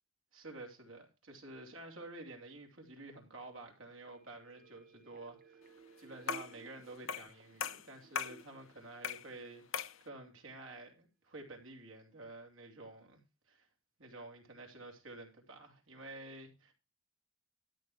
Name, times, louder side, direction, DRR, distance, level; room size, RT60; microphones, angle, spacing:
voice 1, 0.3-5.6 6.0-13.2 13.5-13.7 14.0-16.7, right 2 dB, 75° right, 3.0 m, -50 dB
sound 1, 4.1-9.8 10.1-10.2, right 5 dB, 50° right, 1.1 m, -58 dB
sound 2, 6.3-6.6 7.1-7.3 7.6-8.4 9.0-9.3 9.7-10.0, left 6 dB, 75° left, 0.8 m, -38 dB
13.0 x 6.6 x 4.5 m
head